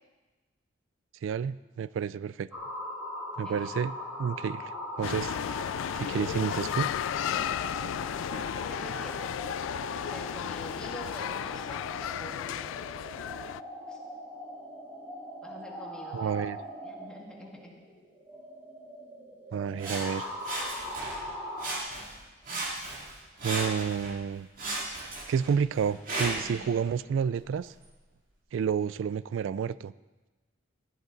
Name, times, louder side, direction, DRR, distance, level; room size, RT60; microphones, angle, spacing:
voice 1, 1.2-2.5 3.4-5.4 5.9-6.9 16.1-16.6 19.5-20.3 23.4-24.5 24.9-27.7 28.5-29.9, right 7 dB, 80° right, 18 dB, 0.3 m, -30 dB
sound 1, 2.5-21.8, equal, 10° right, 3.3 m, -41 dB
sound 2, 5.0-13.6, left 9 dB, 85° left, 0.3 m, -34 dB
voice 2, 8.0-9.2 10.1-12.8 13.9-14.0 15.4-16.5 16.8-17.7 26.4-26.8, equal, 5° left, -2 dB, 2.0 m, -46 dB
Sawing, 19.8-21.3 21.6-22.2 22.4-24.2 24.6-26.6 27.2-27.3, right 2 dB, 45° right, 2.7 m, -35 dB
16.0 x 11.5 x 4.0 m, 1.2 s
head